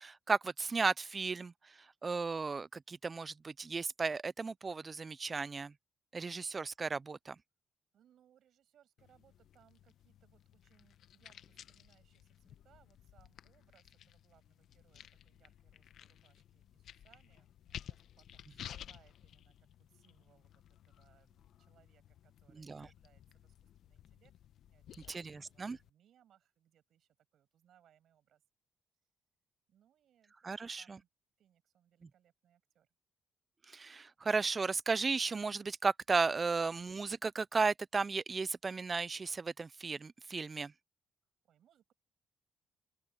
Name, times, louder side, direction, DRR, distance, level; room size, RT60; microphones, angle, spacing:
voice 1, 0.0-1.5 2.0-5.7 6.1-7.4 22.6-22.9 25.1-25.8 30.4-31.0 33.7-40.7, right 4 dB, 30° right, 0.4 m, -35 dB
voice 2, 7.9-24.3 24.6-28.4 29.7-31.1 31.4-32.9 41.4-41.9, right 10 dB, 70° right, 7.2 m, -70 dB
sound 1, 9.0-25.9, left 10 dB, 70° left, 0.9 m, -55 dB
cardioid pair, 90°, 0 cm